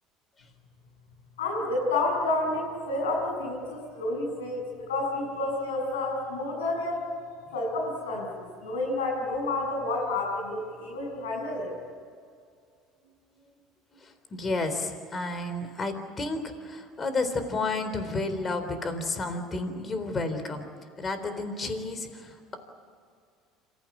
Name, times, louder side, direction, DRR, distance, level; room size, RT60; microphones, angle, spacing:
voice 1, 1.4-7.0 7.5-11.7, left 2 dB, 90° left, 0 dB, 7.7 m, -30 dB
voice 2, 13.9-20.6 21.0-22.6, left 3 dB, 30° left, 9 dB, 3.8 m, -31 dB
27.0 x 15.0 x 9.9 m, 2.2 s
hypercardioid pair, 80°, 0 cm